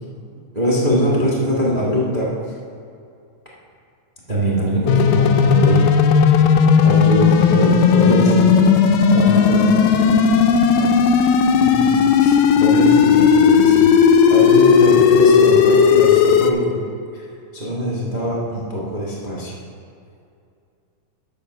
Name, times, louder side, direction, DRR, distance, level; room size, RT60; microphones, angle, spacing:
voice 1, 0.5-2.3 4.3-5.9 6.8-8.5 9.1-9.5 11.6-11.9 12.2-13.9 14.3-16.8 17.1-17.2 17.5-19.5, equal, 85° right, -5 dB, 0.3 m, -22 dB
sound 1, 4.9-16.5, left 6 dB, 80° left, 2.1 m, -14 dB
voice 2, 7.8-8.7 9.1-10.9 14.9-15.0, left 1 dB, 40° right, -4 dB, 1.5 m, -29 dB
10.5 x 5.6 x 6.6 m, 2.4 s
omnidirectional pair, 4.2 m